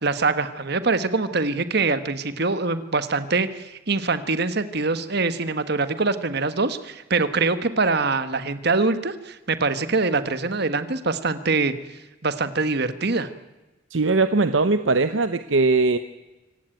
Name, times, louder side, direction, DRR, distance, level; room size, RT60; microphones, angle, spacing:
voice 1, 0.0-11.7 12.2-13.3, right 3 dB, 55° right, 11 dB, 1.4 m, -24 dB
voice 2, 13.9-16.0, right 3 dB, 70° right, 11 dB, 0.9 m, -20 dB
25.5 x 17.0 x 9.2 m, 1.1 s
head